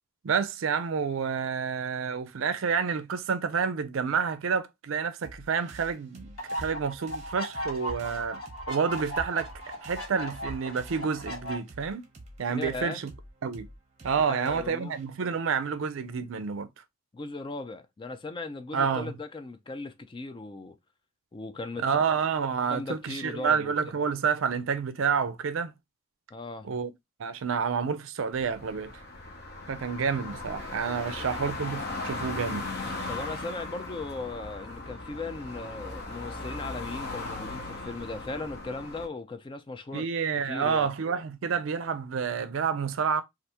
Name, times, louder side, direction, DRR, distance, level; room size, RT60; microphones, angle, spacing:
voice 1, 0.2-8.4 8.7-9.5 9.8-12.0 12.4-13.1 13.4-13.7 14.0-16.7 18.7-19.1 21.8-25.7 26.6-26.9 27.2-28.9 29.7-32.7 39.9-43.2, right 6 dB, 70° right, 0.4 m, -29 dB
sound 1, 5.2-16.3, right 1 dB, 30° right, 0.7 m, -50 dB
sound 2, 6.4-11.6, equal, 80° left, 1.2 m, -37 dB
voice 2, 12.6-13.0 14.3-14.9 17.1-20.8 21.3-21.8 22.7-23.7 26.3-26.7 31.0-31.1 33.1-40.1 40.4-40.9, left 3 dB, 25° left, 0.3 m, -38 dB
sound 3, 28.3-39.1, left 2 dB, 50° left, 0.8 m, -38 dB
3.3 x 2.4 x 2.8 m
head